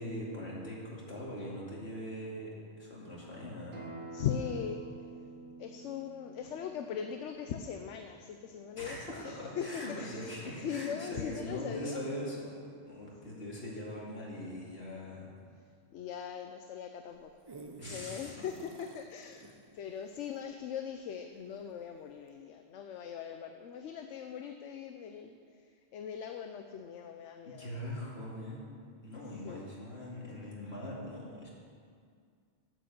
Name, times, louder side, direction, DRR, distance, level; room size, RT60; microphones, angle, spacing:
voice 1, 0.0-3.8 8.8-12.5 12.9-15.3 17.8-18.3 27.5-28.6 29.0-31.5, left 1 dB, 55° left, -5 dB, 2.8 m, -41 dB
Acoustic guitar, 3.7-8.9, right 2 dB, 70° right, 2.1 m, -49 dB
voice 2, 4.1-4.8 5.6-12.0 15.9-17.3 17.6-27.8 29.4-29.7, left 8 dB, 75° left, 6 dB, 0.9 m, -40 dB
sound 1, 17.1-21.8 22.3-22.4, right 3 dB, 30° right, 0.5 m, -53 dB
9.0 x 8.2 x 7.6 m, 2.2 s
omnidirectional pair, 1.3 m